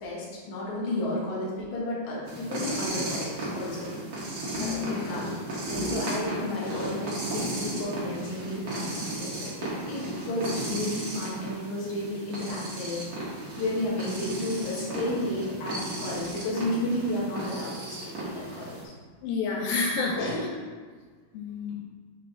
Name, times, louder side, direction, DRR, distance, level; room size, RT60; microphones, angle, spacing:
voice 1, 0.0-3.9 4.6-5.3 5.7-13.0 13.6-18.7 20.2-20.6, left 1 dB, 60° left, -6 dB, 2.6 m, -32 dB
sound 1, 2.2-18.8, right 1 dB, 50° right, 2.1 m, -35 dB
voice 2, 4.5-5.2 19.2-20.2 21.3-21.8, left 4 dB, 85° left, -1 dB, 2.4 m, -29 dB
7.9 x 4.0 x 3.6 m, 1.5 s
omnidirectional pair, 4.3 m